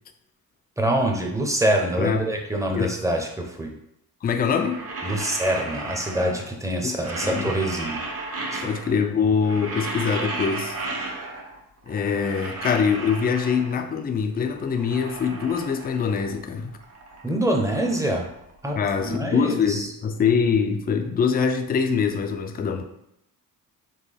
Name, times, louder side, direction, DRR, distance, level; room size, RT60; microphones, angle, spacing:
voice 1, 0.8-3.7 5.0-8.0 8.5-8.7 17.2-18.3 18.6-19.9, right 1 dB, 10° right, 1 dB, 0.7 m, -25 dB
voice 2, 4.2-4.8 6.8-6.9 7.2-7.5 8.6-10.8 11.9-16.7 18.8-22.8, left 6 dB, 25° left, 5 dB, 0.4 m, -24 dB
sound 1, 4.4-6.6 6.9-9.1 9.3-11.6 11.9-13.9 14.4-16.4 16.7-18.9, right 2 dB, 40° right, 1.0 m, -34 dB
4.5 x 3.3 x 3.3 m, 0.79 s
cardioid pair, 120°, 36 cm